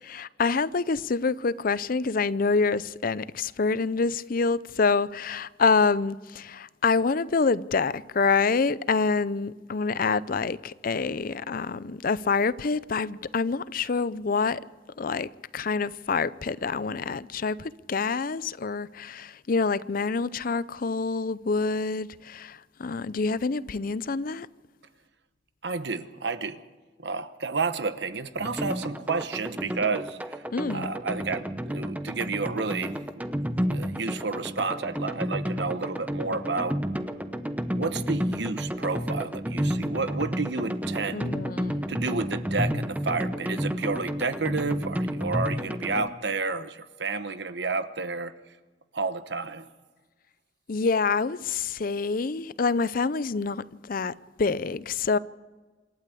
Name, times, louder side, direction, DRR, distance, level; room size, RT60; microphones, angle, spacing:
voice 1, 0.1-14.6 15.0-24.5 30.5-30.9 41.1-41.9 50.7-55.2, left 4 dB, 50° left, 0.5 m, -27 dB
voice 2, 25.6-26.6 27.0-30.4 30.7-33.0 33.7-36.8 37.8-41.3 41.9-48.3 48.9-49.7, right 4 dB, 65° right, 1.1 m, -30 dB
sound 1, 28.4-46.1, equal, 10° right, 0.9 m, -31 dB
27.0 x 12.5 x 8.4 m
head